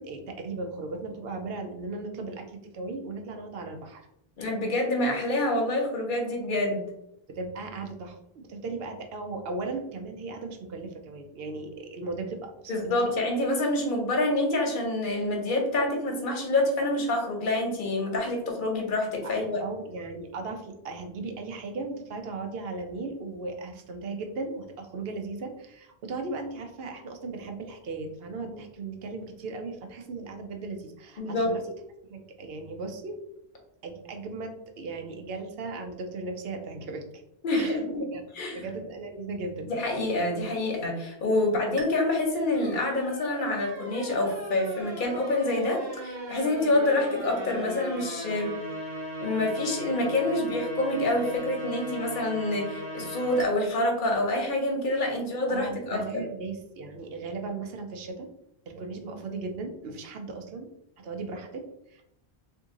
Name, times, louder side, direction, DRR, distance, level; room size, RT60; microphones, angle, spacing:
voice 1, 0.0-4.0 7.3-13.1 19.2-31.7 32.0-33.2 33.8-37.0 37.5-37.8 38.1-38.2 38.5-39.7 55.5-58.3 58.7-60.7 61.0-62.0, right 3 dB, 75° right, 4 dB, 0.8 m, -37 dB
voice 2, 4.4-6.9 12.7-19.6 31.2-31.5 37.4-38.0 38.4-38.6 39.7-48.5 49.2-56.2, left 2 dB, 55° left, 1 dB, 0.9 m, -27 dB
sound 1, 41.8-53.5, right 1 dB, 45° right, 1.3 m, -38 dB
2.6 x 2.6 x 3.7 m, 0.80 s
omnidirectional pair, 1.0 m